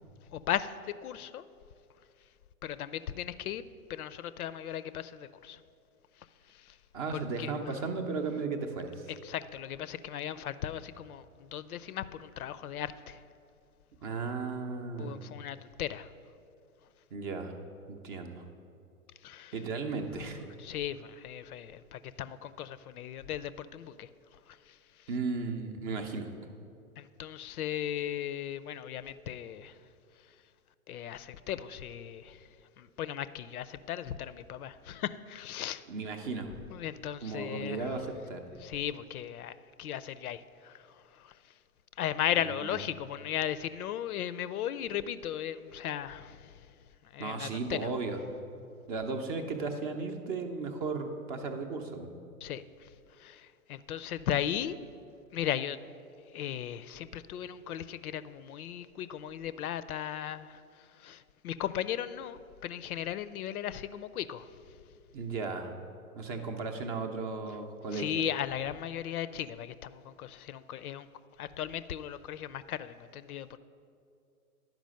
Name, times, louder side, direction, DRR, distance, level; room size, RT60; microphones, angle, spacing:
voice 1, 0.3-1.4 2.6-3.6 3.9-5.6 6.6-6.7 7.1-7.5 9.1-13.2 15.0-16.1 19.2-19.5 20.6-24.1 24.5-24.6 27.0-29.7 30.9-32.4 32.8-35.8 36.7-38.0 38.6-40.8 41.2-41.3 42.0-46.5 47.1-47.9 52.4-52.9 53.2-54.8 55.3-55.8 56.3-60.6 61.0-64.5 67.9-71.1 71.4-73.6, left 10 dB, 75° left, 0.5 m, -36 dB
voice 2, 6.9-9.1 14.0-15.2 17.1-17.5 17.9-18.4 19.5-20.5 25.1-26.3 35.9-36.5 37.2-38.4 42.4-42.8 47.2-48.2 48.9-52.1 65.1-65.7 66.2-68.1, right 4 dB, 25° right, 0.6 m, -35 dB
10.5 x 5.0 x 6.3 m
hypercardioid pair, 130°, 45 cm